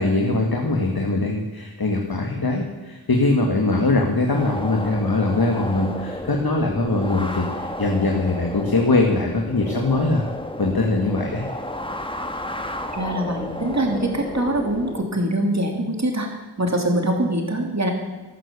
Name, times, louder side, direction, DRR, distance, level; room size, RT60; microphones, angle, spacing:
voice 1, 0.0-10.2 10.6-11.4, left 2 dB, 60° left, 1 dB, 1.9 m, -22 dB
sound 1, 4.3-15.0, left 1 dB, 10° left, 1.4 m, -32 dB
voice 2, 12.9-16.3 16.6-17.9, right 1 dB, 40° right, 2 dB, 2.8 m, -23 dB
13.5 x 13.0 x 6.9 m, 1.2 s
wide cardioid pair, 55°, 41 cm